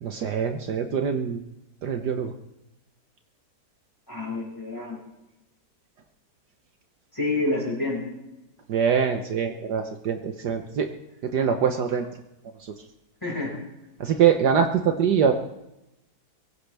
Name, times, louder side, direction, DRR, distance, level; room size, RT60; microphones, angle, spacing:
voice 1, 0.0-1.4 1.8-2.3 8.7-10.9 11.2-12.1 12.6-12.7 14.0-15.3, right 7 dB, 65° right, 5 dB, 1.6 m, -23 dB
voice 2, 4.1-5.0 7.1-8.1 13.2-13.5, left 2 dB, 10° left, -2 dB, 5.6 m, -28 dB
23.0 x 16.5 x 3.4 m, 0.91 s
omnidirectional pair, 2.0 m